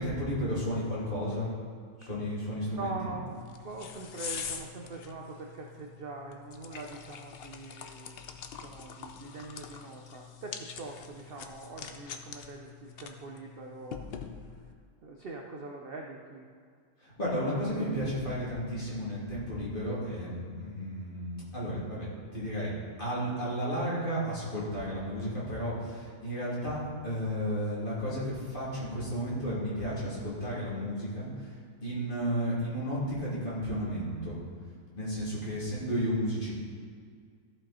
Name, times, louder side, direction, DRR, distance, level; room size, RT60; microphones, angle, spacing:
voice 1, 0.0-1.5 2.0-2.9 17.0-31.3 31.8-34.4 35.0-36.5, equal, 30° left, -8 dB, 3.1 m, -33 dB
voice 2, 2.7-8.3 8.5-14.1 15.0-16.5, right 3 dB, 50° right, 1 dB, 0.7 m, -43 dB
sound 1, 3.3-14.7, left 7 dB, 60° left, 0.6 m, -44 dB
14.5 x 5.4 x 4.3 m, 2.1 s
omnidirectional pair, 1.7 m